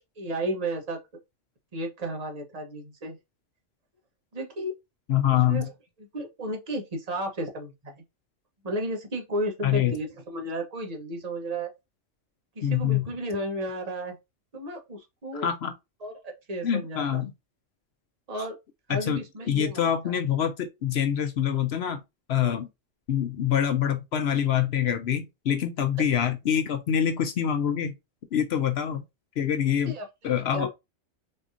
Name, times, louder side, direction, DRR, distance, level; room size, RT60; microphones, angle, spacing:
voice 1, 0.2-1.0 1.7-3.2 4.3-4.7 5.5-5.7 6.1-8.0 8.6-11.7 12.6-14.2 14.5-15.5 16.0-17.2 18.3-18.6 18.9-20.2 29.8-30.1 30.5-30.7, right 1 dB, 35° right, 0.9 m, -33 dB
voice 2, 5.1-5.7 9.6-9.9 12.6-13.1 15.3-15.7 16.6-17.3 18.9-19.2 19.5-22.0 22.3-22.7 23.1-27.9 28.3-29.0 29.4-29.9 30.2-30.7, left 9 dB, 65° left, 0.8 m, -25 dB
4.3 x 2.8 x 2.4 m
omnidirectional pair, 1.3 m